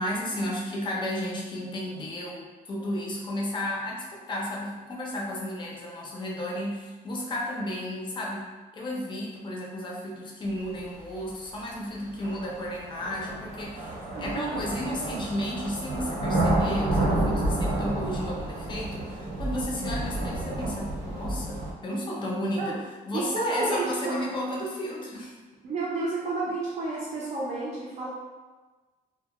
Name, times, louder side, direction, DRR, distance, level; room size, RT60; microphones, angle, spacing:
voice 1, 0.0-8.5 8.7-22.8 23.1-25.4, left 1 dB, 30° left, -2 dB, 0.5 m, -33 dB
sound 1, 11.1-11.2 12.2-21.7, right 1 dB, 85° right, 0.9 m, -30 dB
voice 2, 14.1-14.7 22.6-22.8 23.1-24.2 25.6-28.1, right 3 dB, 40° right, -7 dB, 0.4 m, -31 dB
2.2 x 2.1 x 2.8 m, 1.3 s
cardioid pair, 145°, 17 cm